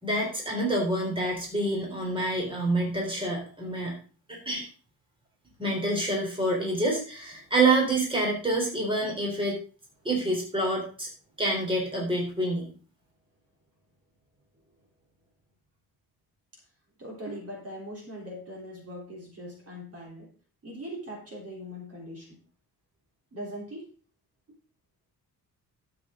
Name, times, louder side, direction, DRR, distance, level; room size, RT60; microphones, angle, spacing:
voice 1, 0.0-4.0 4.3-4.7 5.6-9.6 10.0-11.1 11.4-12.7, right 2 dB, 15° right, -2 dB, 3.7 m, -27 dB
voice 2, 17.0-20.3 20.6-22.4 23.3-23.9, equal, 40° right, -1 dB, 3.7 m, -40 dB
12.5 x 8.2 x 3.8 m, 0.38 s
wide cardioid pair, 160°, 37 cm